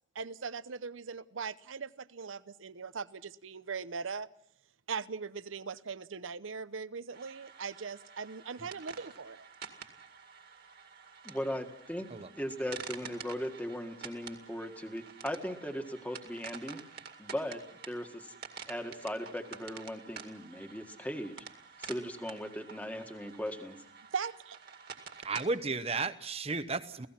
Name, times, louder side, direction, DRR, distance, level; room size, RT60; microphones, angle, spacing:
voice 1, 0.1-4.3 4.9-9.4 24.1-24.6, right 5 dB, 80° right, 16 dB, 0.8 m, -40 dB
sound 1, 7.1-25.5, right 6 dB, 55° right, 2.1 m, -49 dB
voice 2, 11.2-12.1 12.4-16.8 17.2-18.4 18.7-21.5 21.8-23.8, equal, 10° left, 5 dB, 1.8 m, -38 dB
voice 3, 25.2-27.1, right 3 dB, 30° right, 12 dB, 1.0 m, -33 dB
29.5 x 17.0 x 5.8 m, 0.71 s
head